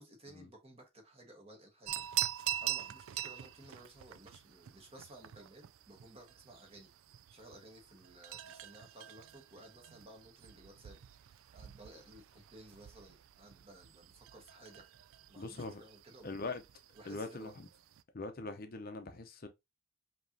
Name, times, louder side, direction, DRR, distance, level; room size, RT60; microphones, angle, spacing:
voice 1, 0.0-6.9 7.3-14.9 15.3-16.6 16.9-17.5, right 1 dB, 30° right, 1.4 m, -56 dB
sound 1, 1.9-18.0, right 13 dB, 75° right, 0.4 m, -44 dB
voice 2, 15.4-15.8 16.2-16.6 17.0-17.7 18.1-19.5, left 3 dB, 45° left, 0.7 m, -42 dB
5.1 x 3.0 x 2.7 m
head